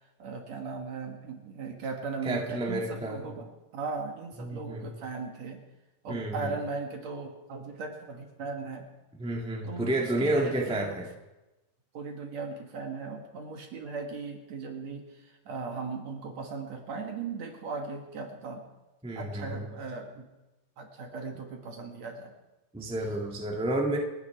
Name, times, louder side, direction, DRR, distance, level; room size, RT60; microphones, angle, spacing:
voice 1, 0.2-5.6 6.0-8.8 9.6-11.0 11.9-18.6 19.2-20.3 20.8-22.3, right 4 dB, 55° right, 3 dB, 2.8 m, -38 dB
voice 2, 2.2-3.3 4.4-4.9 6.1-6.6 9.1-11.1 19.0-19.7 22.7-24.0, right 1 dB, 5° right, 0 dB, 0.6 m, -30 dB
29.5 x 9.8 x 4.8 m, 1.0 s
omnidirectional pair, 4.1 m